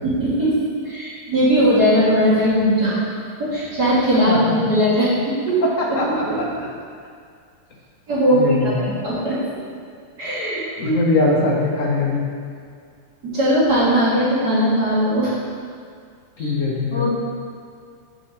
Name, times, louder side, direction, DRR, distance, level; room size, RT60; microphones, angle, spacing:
voice 1, 0.0-0.5 0.8-3.0 3.4-5.1 5.5-5.6 6.3-6.4 8.1-8.7 9.0-9.4 10.2-10.9 13.3-15.3 16.4-16.5 16.9-17.1, equal, 50° right, -9 dB, 2.2 m, -19 dB
voice 2, 4.3-4.8 5.8-6.7 8.3-8.9 10.8-12.2 16.4-17.1, left 3 dB, 55° left, -1 dB, 0.9 m, -22 dB
5.8 x 5.6 x 5.7 m, 2.2 s
omnidirectional pair, 2.3 m